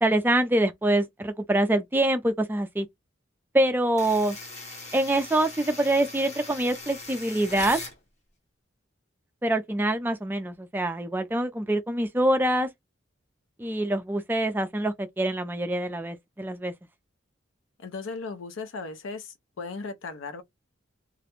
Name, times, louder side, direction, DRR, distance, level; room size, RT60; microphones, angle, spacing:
voice 1, 0.0-2.9 3.5-4.4 4.9-7.8 9.4-12.7 13.6-16.7, right 1 dB, 10° right, 0.3 m, -25 dB
sound 1, 4.0-8.0, left 2 dB, 35° left, 0.8 m, -40 dB
voice 2, 17.8-20.4, left 4 dB, 80° left, 0.5 m, -37 dB
2.4 x 2.1 x 2.8 m
head